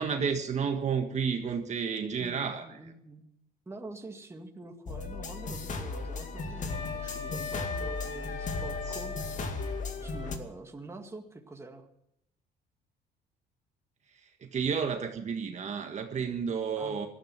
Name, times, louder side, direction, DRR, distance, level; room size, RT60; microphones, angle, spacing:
voice 1, 0.0-2.9 8.9-9.0 14.4-17.1, right 6 dB, 45° right, 5 dB, 1.6 m, -31 dB
voice 2, 2.2-3.3 3.7-11.9 16.8-17.0, right 2 dB, 15° right, 4 dB, 2.1 m, -46 dB
sound 1, 4.9-10.4, left 4 dB, 45° left, 2.2 m, -36 dB
Wind instrument woodwind instrument, 6.7-9.9, left 4 dB, 25° left, 3.7 m, -39 dB
17.5 x 13.0 x 6.1 m, 0.79 s
cardioid pair, 110°, 17 cm